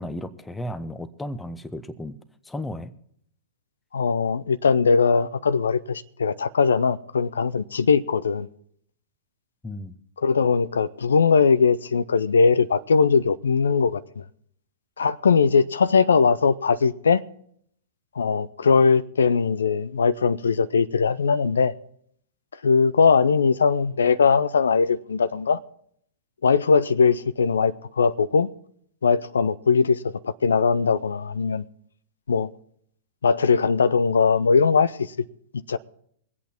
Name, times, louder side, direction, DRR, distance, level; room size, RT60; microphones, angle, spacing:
voice 1, 0.0-2.2 2.5-2.9 9.6-9.9, left 1 dB, 10° left, 0.9 m, -34 dB
voice 2, 3.9-8.5 10.2-14.0 15.0-17.2 18.2-21.7 22.6-25.6 26.4-28.5 29.0-31.6 32.3-32.5 33.2-35.1 35.7-35.8, left 5 dB, 75° left, 0.5 m, -20 dB
22.5 x 8.4 x 4.4 m
figure-of-eight pair, 105°, 0 cm